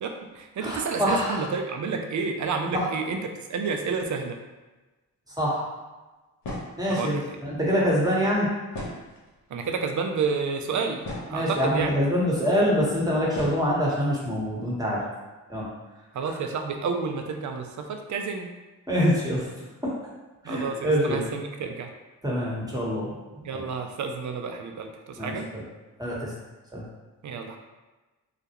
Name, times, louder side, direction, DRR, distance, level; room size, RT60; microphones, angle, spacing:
voice 1, 0.0-3.2 3.5-4.4 6.9-7.1 9.5-11.0 11.3-11.9 16.1-18.5 20.5-21.9 23.4-25.5 27.2-27.6, right 5 dB, 45° right, 4 dB, 0.5 m, -30 dB
voice 2, 0.6-1.4 2.7-2.9 5.4-5.7 6.8-8.5 11.3-15.0 15.5-15.6 18.9-19.5 19.8-19.9 20.4-21.2 22.2-23.1 23.5-23.6 25.2-25.6 26.0-26.3 26.7-26.8, equal, 10° right, -5 dB, 1.0 m, -25 dB
sound 1, 6.4-6.9 8.7-9.4 10.3-10.4 10.8-11.6 12.5-12.6 13.3-13.7, left 1 dB, 75° left, 0.8 m, -36 dB
2.3 x 2.1 x 2.8 m, 1.2 s
supercardioid pair, 45°, 40 cm